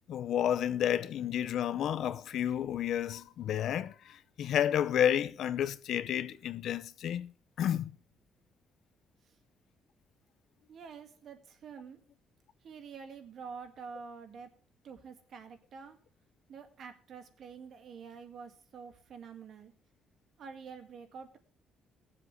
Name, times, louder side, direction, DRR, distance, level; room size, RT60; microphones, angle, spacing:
voice 1, 0.1-7.3 7.6-7.9, left 10 dB, 65° left, 0.7 m, -31 dB
voice 2, 10.7-12.0 12.6-14.5 14.8-16.0 16.5-19.7 20.4-21.4, right 6 dB, 55° right, 1.9 m, -47 dB
18.5 x 7.5 x 4.6 m
cardioid pair, 135°, 0 cm